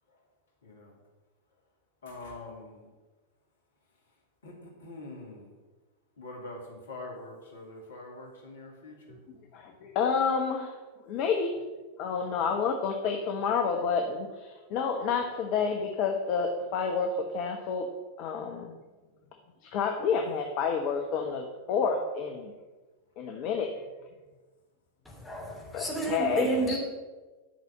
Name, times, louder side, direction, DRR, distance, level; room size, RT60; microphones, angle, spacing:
voice 1, 0.6-1.0 2.0-2.9 3.9-5.5 6.2-9.2, left 2 dB, 65° left, 0 dB, 2.5 m, -45 dB
voice 2, 9.5-10.8 11.1-11.6 12.0-17.9 18.2-18.7 19.6-22.5 23.2-23.8 25.7-26.8, left 5 dB, 40° left, 4 dB, 1.1 m, -29 dB
voice 3, 25.0-26.8, right 1 dB, 5° left, -3 dB, 3.2 m, -31 dB
10.5 x 6.1 x 7.3 m, 1.3 s
figure-of-eight pair, 90°, 0 cm